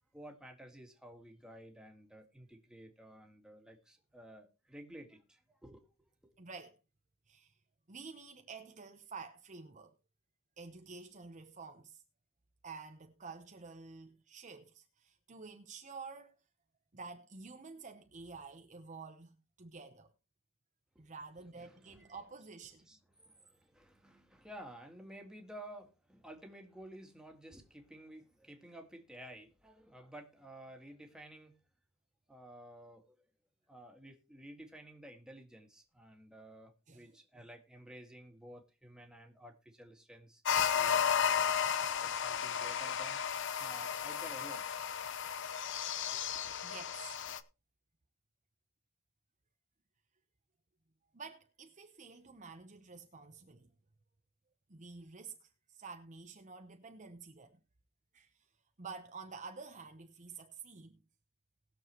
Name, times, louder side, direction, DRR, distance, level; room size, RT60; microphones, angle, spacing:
voice 1, 0.1-6.3 21.0-31.6 32.3-33.2 33.7-41.5 42.0-44.7 46.1-46.6, right 1 dB, 5° right, 2.0 m, -53 dB
voice 2, 6.4-6.8 7.3-7.5 7.9-9.9 10.6-12.0 12.6-16.3 16.9-20.1 21.0-22.9 36.9-37.4 46.6-47.2 51.1-53.7 54.7-57.6 58.1-58.4 58.8-61.0, right 4 dB, 35° right, 0.9 m, -50 dB
sound 1, 40.5-47.4, left 8 dB, 55° left, 0.8 m, -33 dB
20.0 x 7.1 x 3.0 m
head